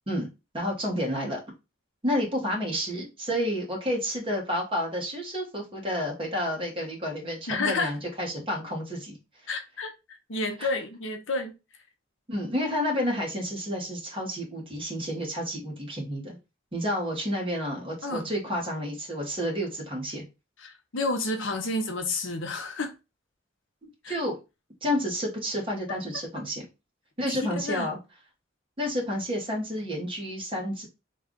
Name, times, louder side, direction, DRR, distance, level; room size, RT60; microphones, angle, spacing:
voice 1, 0.5-1.4 2.0-9.2 10.6-10.7 12.3-16.4 16.7-20.2 23.8-24.4 24.8-26.6 27.2-28.0 28.8-30.9, equal, 25° right, 1.2 m, -30 dB
voice 2, 7.5-7.9 9.5-11.5 18.0-18.3 20.6-22.9 24.0-24.2 27.3-27.9, left 2 dB, 70° left, 0.8 m, -30 dB
3.3 x 2.3 x 3.7 m
head